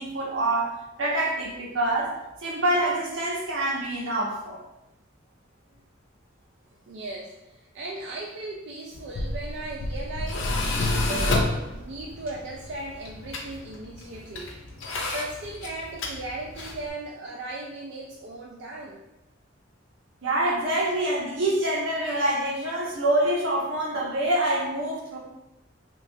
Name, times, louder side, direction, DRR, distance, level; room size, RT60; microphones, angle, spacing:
voice 1, 0.0-2.2 2.4-4.6 20.2-25.2, right 1 dB, 80° right, -3 dB, 0.9 m, -26 dB
voice 2, 6.9-14.5 15.1-19.0, right 2 dB, 65° right, -2 dB, 0.4 m, -37 dB
Tools, 8.9-16.9, left 2 dB, 75° left, 0.5 m, -30 dB
3.2 x 3.0 x 2.7 m, 0.93 s
head